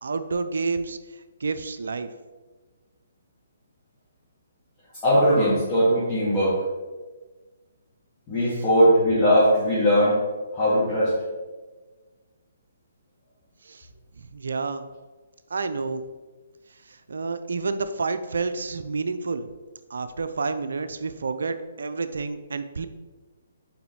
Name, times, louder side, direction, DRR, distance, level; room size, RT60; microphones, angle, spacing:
voice 1, 0.0-2.1 8.5-8.6 13.6-13.9 14.2-14.9 15.5-16.0 16.9-19.5 19.9-22.9, right 4 dB, 65° right, 11 dB, 0.4 m, -29 dB
voice 2, 5.0-6.6 8.3-10.2 10.5-11.1, equal, 25° left, -11 dB, 1.9 m, -19 dB
5.7 x 4.6 x 3.6 m, 1.3 s
figure-of-eight pair, 135°, 0 cm